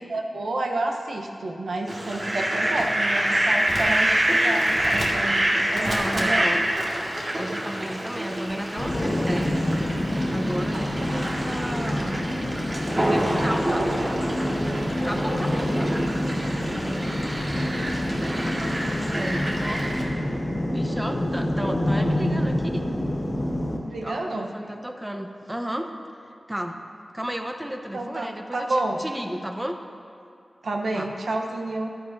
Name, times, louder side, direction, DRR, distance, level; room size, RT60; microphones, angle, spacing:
voice 1, 0.1-6.4 23.9-24.5 27.9-28.3 28.5-29.0 30.6-31.9, right 2 dB, 80° right, 2 dB, 0.9 m, -29 dB
Fowl, 1.9-20.0, right 1 dB, 50° right, 1.9 m, -27 dB
voice 2, 5.8-6.6 7.4-9.6 10.3-12.2 12.9-14.6 15.0-16.0 16.5-17.0 18.9-19.9 20.7-22.9 24.0-25.9 26.5-26.8 27.1-29.8 30.9-31.1, equal, 15° right, 4 dB, 0.8 m, -33 dB
sound 1, 8.8-23.8, left 1 dB, 45° left, 1.7 m, -27 dB
14.0 x 10.5 x 2.7 m, 2.4 s
cardioid pair, 55°, 0 cm